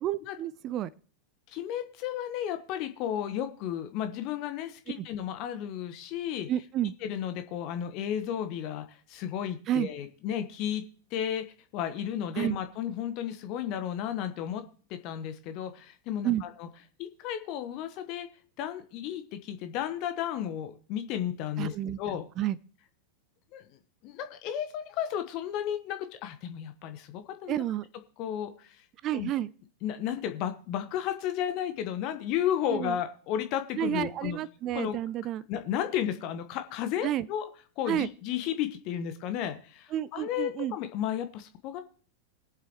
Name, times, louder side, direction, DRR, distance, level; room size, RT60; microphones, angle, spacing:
voice 1, 0.0-0.9 5.0-5.1 6.5-6.9 9.7-9.9 12.4-12.6 16.2-16.4 21.6-22.6 27.5-27.8 29.0-29.5 32.7-33.0 33.8-35.4 37.0-37.3 37.9-38.1 39.9-40.8, right 12 dB, 35° right, 19 dB, 0.4 m, -30 dB
voice 2, 1.5-6.5 7.0-10.8 11.1-11.4 11.7-14.6 14.9-16.7 17.0-18.3 18.6-22.2 23.5-23.6 24.0-27.6 28.2-28.8 29.1-29.3 29.8-34.4 34.7-35.0 35.5-37.4 37.8-41.8, left 10 dB, 40° left, 8 dB, 1.1 m, -33 dB
21.0 x 7.4 x 3.1 m, 0.42 s
figure-of-eight pair, 90°, 0 cm